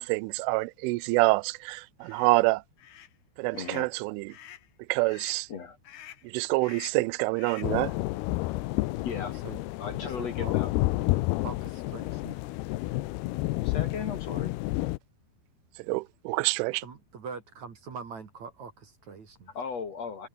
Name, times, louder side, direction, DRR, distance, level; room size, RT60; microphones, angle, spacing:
voice 1, 0.0-2.6 3.4-4.3 4.9-5.5 6.2-7.9 15.9-16.8, right 24 dB, 85° right, 3.0 m, -26 dB
sound 1, 2.0-2.3 2.8-3.1 3.5-3.9 4.3-4.7 5.1-5.4 5.8-6.3 6.6-7.1 7.4-7.8, left 11 dB, 65° left, 2.0 m, -48 dB
voice 2, 3.5-3.9 5.5-5.8 9.0-9.3 9.8-10.7 13.6-14.5 19.5-20.3, left 6 dB, 45° left, 2.3 m, -36 dB
sound 2, 7.6-15.0, left 19 dB, 85° left, 2.3 m, -30 dB
voice 3, 9.3-9.6 9.9-10.5 11.4-12.4 15.9-16.0 16.8-19.5, right 5 dB, 45° right, 3.3 m, -43 dB
omnidirectional pair, 5.6 m